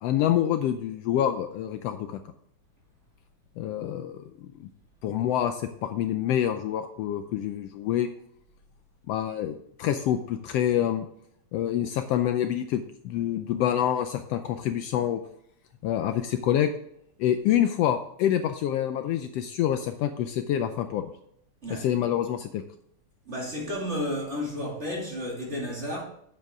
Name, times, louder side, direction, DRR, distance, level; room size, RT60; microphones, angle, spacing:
voice 1, 0.0-2.2 3.6-4.5 5.0-8.1 9.1-11.1 11.5-15.2 15.8-16.7 17.2-21.1 21.7-22.6, left 10 dB, 90° left, 1.4 m, -27 dB
voice 2, 23.3-26.0, left 1 dB, 25° right, 2.0 m, -32 dB
9.3 x 7.7 x 3.5 m
omnidirectional pair, 3.4 m